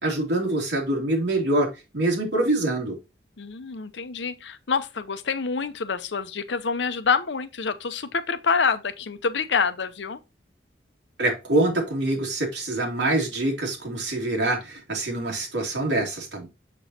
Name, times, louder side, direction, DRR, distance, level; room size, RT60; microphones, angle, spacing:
voice 1, 0.0-1.7 1.9-3.0 11.2-16.5, right 2 dB, 80° right, 2.7 m, -25 dB
voice 2, 3.4-10.2, left 5 dB, 80° left, 0.7 m, -27 dB
6.9 x 6.1 x 2.8 m
head